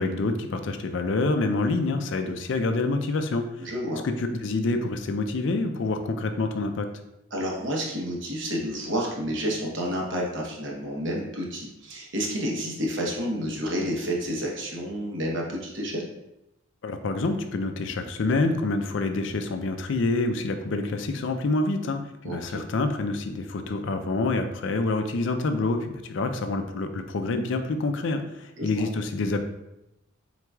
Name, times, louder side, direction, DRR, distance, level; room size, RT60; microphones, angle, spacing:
voice 1, 0.0-3.7 4.2-6.9 16.8-29.4, left 3 dB, 55° left, 7 dB, 0.4 m, -27 dB
voice 2, 3.6-4.0 7.3-16.1 22.2-22.6 28.6-28.9, equal, 55° right, -2 dB, 0.9 m, -30 dB
4.5 x 3.9 x 2.3 m, 0.90 s
head